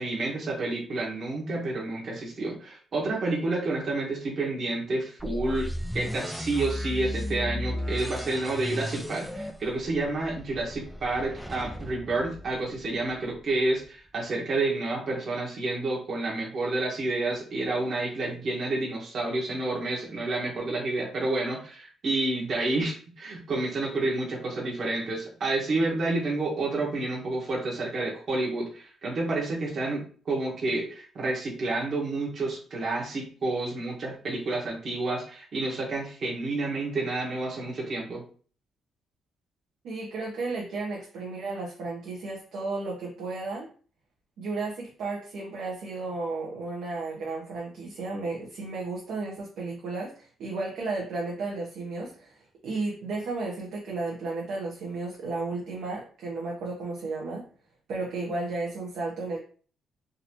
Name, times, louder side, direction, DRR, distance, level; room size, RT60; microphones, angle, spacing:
voice 1, 0.0-5.7 5.9-38.2, right 2 dB, 45° right, -3 dB, 1.3 m, -29 dB
sound 1, 5.2-13.1, left 1 dB, ahead, 0.4 m, -35 dB
voice 2, 39.8-43.7 44.4-57.5 57.9-59.4, right 3 dB, 70° right, -2 dB, 1.0 m, -33 dB
3.8 x 2.8 x 3.0 m, 0.41 s
cardioid pair, 130°, 0 cm